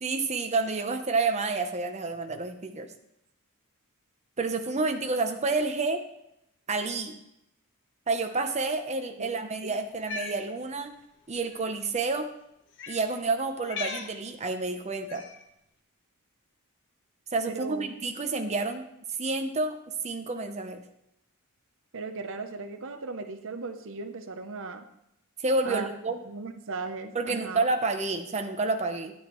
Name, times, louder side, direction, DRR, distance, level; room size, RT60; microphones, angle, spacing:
voice 1, 0.0-2.9 4.4-6.0 6.7-7.2 8.1-10.9 11.3-12.3 12.9-15.2 17.3-18.9 19.2-19.8 20.0-20.8 25.4-26.2 27.1-29.1, right 3 dB, 30° right, 5 dB, 0.8 m, -29 dB
Cat, 9.9-10.4 11.4-11.6 12.7-13.0 13.6-14.1 15.1-15.4, left 4 dB, 55° left, 1.1 m, -37 dB
voice 2, 17.5-17.9 21.9-24.9 25.6-25.9 26.3-27.6, right 4 dB, 60° right, 8 dB, 0.8 m, -37 dB
12.5 x 9.6 x 3.1 m, 0.80 s
head